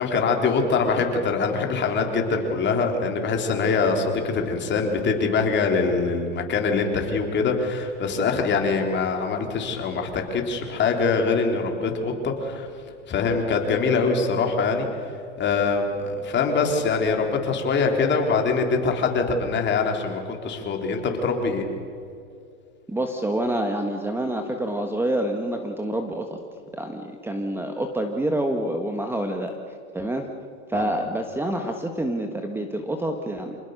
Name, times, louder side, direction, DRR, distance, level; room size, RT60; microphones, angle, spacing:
voice 1, 0.0-12.7 13.1-14.9 15.4-21.6 30.7-30.9, left 4 dB, 30° left, 3 dB, 3.8 m, -23 dB
voice 2, 22.9-26.4 26.7-30.3 30.7-33.6, right 1 dB, 5° right, 5 dB, 1.5 m, -27 dB
27.5 x 20.0 x 6.7 m, 2.5 s
supercardioid pair, 125°, 35 cm